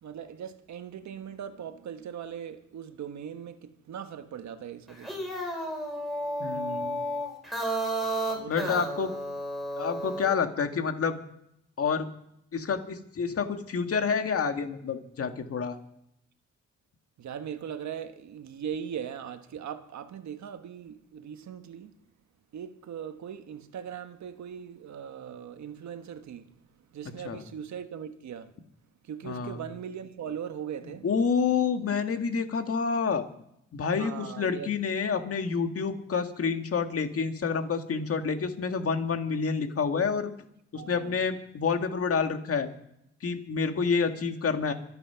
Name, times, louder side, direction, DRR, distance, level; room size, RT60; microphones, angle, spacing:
voice 1, 0.0-5.3 8.4-8.8 17.2-21.9 22.5-26.5 26.9-28.5 29.0-31.1 34.0-34.7 40.7-41.2, right 8 dB, 70° right, 1.4 m, -39 dB
sound 1, 4.9-10.4, right 1 dB, ahead, 5.7 m, -32 dB
voice 2, 6.4-7.1 8.5-9.1 9.8-11.2 11.8-12.1 12.5-15.8 27.2-27.4 29.2-29.6 31.0-33.2 33.7-40.3 40.7-42.7 43.2-44.7, left 5 dB, 50° left, 1.9 m, -28 dB
25.0 x 8.6 x 5.8 m
cardioid pair, 105°, 29 cm